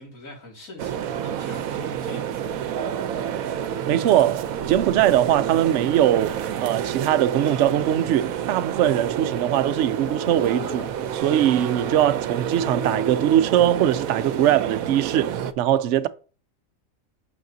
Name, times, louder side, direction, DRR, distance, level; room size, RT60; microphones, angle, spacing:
voice 1, 0.0-2.8, left 2 dB, 75° left, 2.8 m, -44 dB
sound 1, 0.8-15.5, right 9 dB, 85° right, 1.1 m, -29 dB
voice 2, 3.9-16.1, right 11 dB, 65° right, 0.8 m, -21 dB
sound 2, 9.6-15.0, right 2 dB, 25° right, 1.5 m, -37 dB
9.0 x 6.4 x 2.7 m
omnidirectional pair, 1.4 m